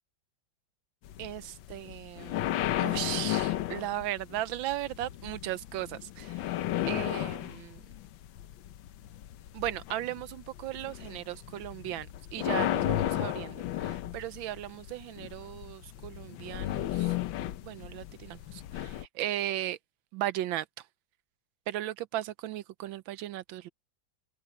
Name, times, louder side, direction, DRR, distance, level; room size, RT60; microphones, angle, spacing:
sound 1, 1.0-19.0, left 13 dB, 75° left, 1.5 m, -34 dB
voice 1, 1.2-2.3 2.8-6.3 6.9-7.8 9.5-17.1 17.6-19.8 20.1-20.6 21.7-23.7, right 13 dB, 80° right, 1.4 m, -36 dB
open air
omnidirectional pair, 2.1 m